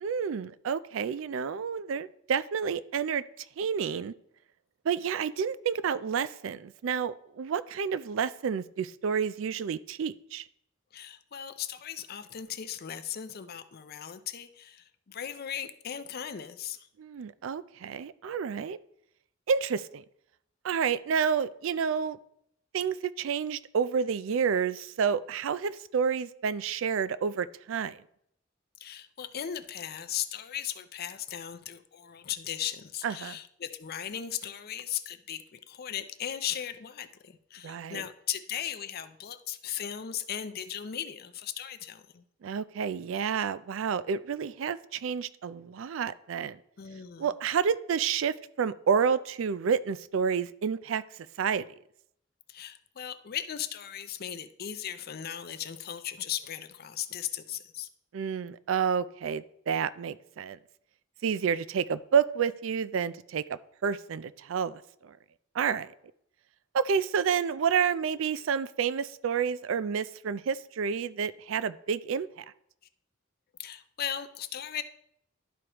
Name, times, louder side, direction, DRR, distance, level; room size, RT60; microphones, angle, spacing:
voice 1, 0.0-4.1 4.8-10.4 17.0-18.8 19.5-20.0 20.6-22.2 22.7-28.0 33.0-33.4 37.6-38.0 42.4-46.6 47.2-51.0 51.4-51.6 58.1-60.6 61.2-65.2 65.5-65.9 66.7-72.4, right 7 dB, 70° right, 16 dB, 0.4 m, -29 dB
voice 2, 10.9-16.9 28.8-42.2 46.8-47.3 52.5-57.9 73.6-74.8, left 10 dB, 50° left, 11 dB, 0.5 m, -37 dB
12.0 x 4.7 x 2.9 m, 0.72 s
head